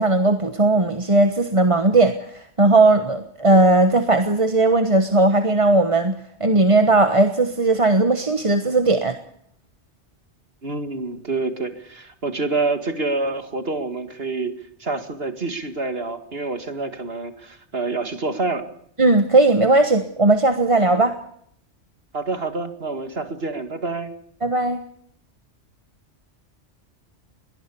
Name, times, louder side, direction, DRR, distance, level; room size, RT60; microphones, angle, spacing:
voice 1, 0.0-9.2 19.0-21.2 24.4-24.8, right 2 dB, 30° right, 8 dB, 1.3 m, -17 dB
voice 2, 10.6-18.7 22.1-24.1, right 3 dB, 55° right, 9 dB, 2.3 m, -27 dB
22.0 x 19.0 x 7.0 m, 0.69 s
omnidirectional pair, 1.2 m